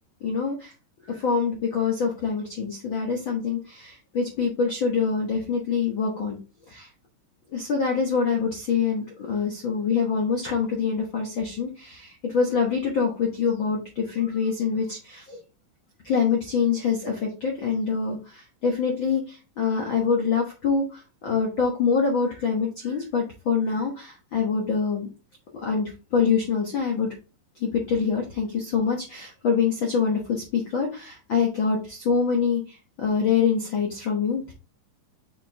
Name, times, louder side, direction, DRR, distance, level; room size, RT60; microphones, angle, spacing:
voice 1, 0.2-0.7 1.1-6.4 6.7-6.9 7.5-15.4 16.0-25.1 25.5-27.1 27.6-34.5, left 5 dB, 60° left, 0 dB, 1.2 m, -25 dB
6.2 x 4.9 x 3.7 m, 0.32 s
omnidirectional pair, 4.0 m